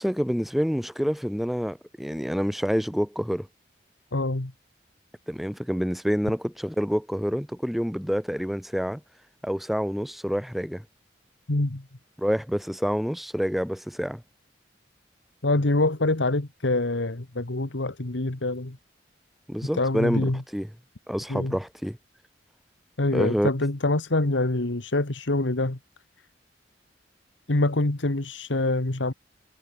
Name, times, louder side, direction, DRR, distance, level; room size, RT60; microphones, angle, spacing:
voice 1, 0.0-3.5 5.3-9.0 9.4-10.8 12.2-14.2 19.5-20.7 21.1-22.0 23.1-23.5, equal, ahead, 0.7 m, -27 dB
voice 2, 4.1-4.5 11.5-11.9 15.4-18.8 19.8-20.4 21.3-21.6 23.0-25.8 27.5-29.1, left 2 dB, 80° left, 1.6 m, -25 dB
head